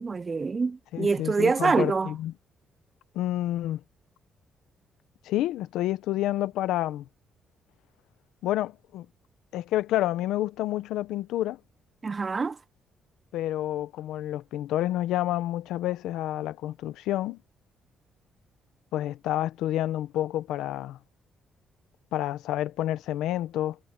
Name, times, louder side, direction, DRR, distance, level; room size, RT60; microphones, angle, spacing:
voice 1, 0.0-2.1 12.0-12.6, right 4 dB, 30° right, 0.3 m, -25 dB
voice 2, 0.9-2.3 3.1-3.8 5.2-7.1 8.4-9.1 9.5-11.6 13.3-17.4 18.9-21.0 22.1-23.8, left 13 dB, 90° left, 0.9 m, -29 dB
cardioid pair, 90°, 0 cm